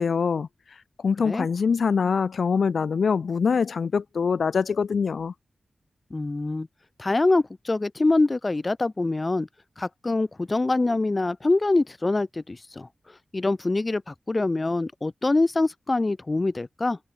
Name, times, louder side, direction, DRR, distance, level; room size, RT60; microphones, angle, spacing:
voice 1, 0.0-5.3, left 5 dB, 65° left, 1.7 m, -24 dB
voice 2, 6.1-6.7 7.0-9.5 9.8-12.9 13.3-17.0, left 2 dB, 25° left, 2.1 m, -24 dB
wide cardioid pair, 150°, 0 cm